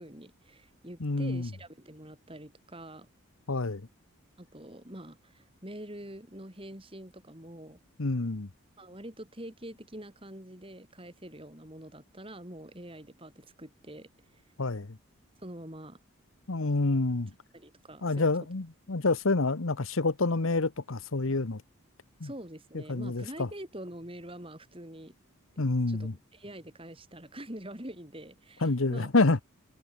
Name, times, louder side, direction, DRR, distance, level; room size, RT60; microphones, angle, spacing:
voice 1, 0.0-3.1 4.4-7.8 8.8-14.4 15.4-16.0 17.5-18.3 22.2-25.1 25.6-29.1, right 1 dB, 25° right, 3.8 m, -45 dB
voice 2, 1.0-1.5 3.5-3.8 8.0-8.5 14.6-15.0 16.5-17.3 18.0-21.6 22.2-22.3 22.7-23.5 25.6-26.1 28.6-29.4, left 3 dB, 70° left, 1.1 m, -28 dB
head